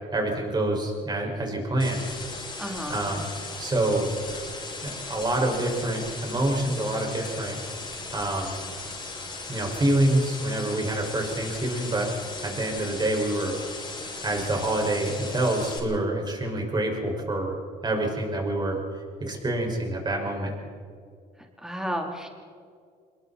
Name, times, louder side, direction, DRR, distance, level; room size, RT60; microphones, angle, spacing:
voice 1, 0.1-2.0 2.9-3.3 3.6-4.2 4.8-7.6 8.1-8.7 9.5-12.1 12.4-13.6 14.2-17.6 17.8-18.8 19.2-20.5, right 1 dB, 25° right, 1 dB, 5.7 m, -26 dB
sound 1, 1.8-15.8, left 3 dB, 25° left, 6.1 m, -37 dB
voice 2, 2.6-3.0 21.6-22.3, equal, 5° right, 1 dB, 3.4 m, -31 dB
27.0 x 22.5 x 4.3 m, 2.2 s
cardioid pair, 110°, 17 cm